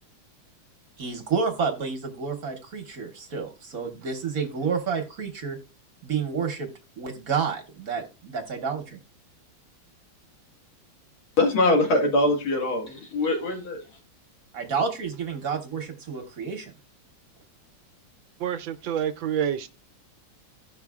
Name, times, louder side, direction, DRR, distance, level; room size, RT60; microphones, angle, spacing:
voice 1, 1.0-5.6 6.0-6.7 7.0-9.0 14.5-16.7, right 5 dB, 50° right, 1.3 m, -30 dB
voice 2, 11.4-13.8, left 2 dB, 80° left, 2.5 m, -23 dB
voice 3, 18.4-19.7, right 9 dB, 75° right, 1.4 m, -27 dB
16.5 x 5.6 x 2.3 m
omnidirectional pair, 2.2 m